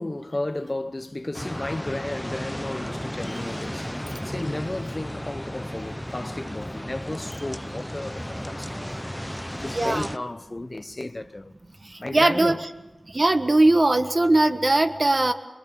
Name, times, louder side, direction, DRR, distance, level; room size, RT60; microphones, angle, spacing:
voice 1, 0.0-11.5 12.0-12.6, left 2 dB, 35° left, 1.0 m, -33 dB
sound 1, 1.3-10.2, equal, 5° left, 0.8 m, -34 dB
voice 2, 9.7-10.1 12.1-12.6 13.1-15.3, right 2 dB, 45° right, 1.6 m, -19 dB
26.0 x 22.0 x 7.0 m
cardioid pair, 45°, 0 cm